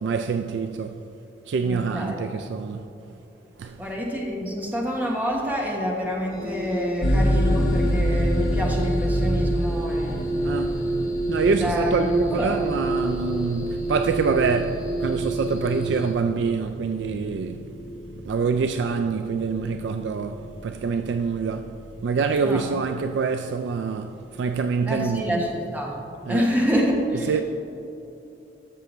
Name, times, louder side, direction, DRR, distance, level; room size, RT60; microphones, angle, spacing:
voice 1, 0.0-1.0 1.5-2.9 3.6-3.8 10.4-10.8 11.3-17.7 18.3-21.8 22.0-25.4 26.3-26.5 27.3-27.4, right 5 dB, 75° right, 0.3 m, -26 dB
voice 2, 1.6-2.3 3.8-11.0 11.4-12.6 22.4-22.8 24.9-26.0 26.3-27.4, equal, 10° right, 1.1 m, -27 dB
sound 1, 6.3-16.1, right 1 dB, 20° left, 0.8 m, -30 dB
sound 2, 7.0-25.6, equal, 75° left, 1.2 m, -29 dB
13.0 x 6.8 x 3.1 m
head